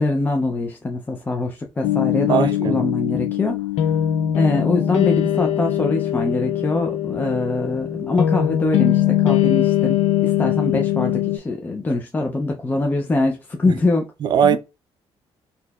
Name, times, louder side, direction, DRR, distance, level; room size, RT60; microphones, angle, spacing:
voice 1, 0.0-3.6 4.4-14.0 14.4-14.6, left 2 dB, 20° left, 0.4 m, -23 dB
sound 1, 1.8-11.4, left 12 dB, 80° left, 0.4 m, -21 dB
voice 2, 2.3-2.8 14.2-14.6, right 8 dB, 45° right, 0.4 m, -19 dB
3.9 x 2.7 x 2.3 m
cardioid pair, 145°, 10 cm